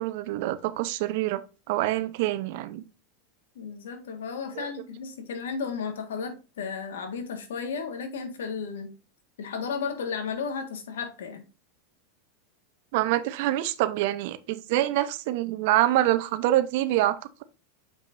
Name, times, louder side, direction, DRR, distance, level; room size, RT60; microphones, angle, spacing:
voice 1, 0.0-2.8 4.6-4.7 12.9-17.4, right 14 dB, 65° right, 0.7 m, -26 dB
voice 2, 3.5-8.9 9.4-11.4, left 5 dB, 90° left, 1.6 m, -34 dB
7.0 x 5.3 x 2.6 m
supercardioid pair, 125°, 0 cm